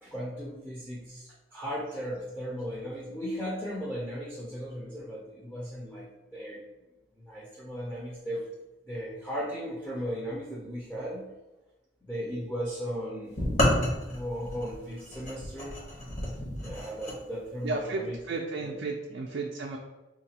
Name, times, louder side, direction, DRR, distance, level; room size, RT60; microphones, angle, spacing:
voice 1, 0.0-6.6 7.2-8.4 8.9-11.3 12.0-13.7 14.1-15.8 16.6-18.2 18.6-18.8, equal, 5° left, -6 dB, 0.5 m, -36 dB
sound 1, 13.4-17.2, left 1 dB, 35° left, 0.8 m, -30 dB
voice 2, 17.6-19.8, right 3 dB, 65° right, 0 dB, 0.3 m, -33 dB
3.9 x 2.2 x 2.8 m, 1.0 s
head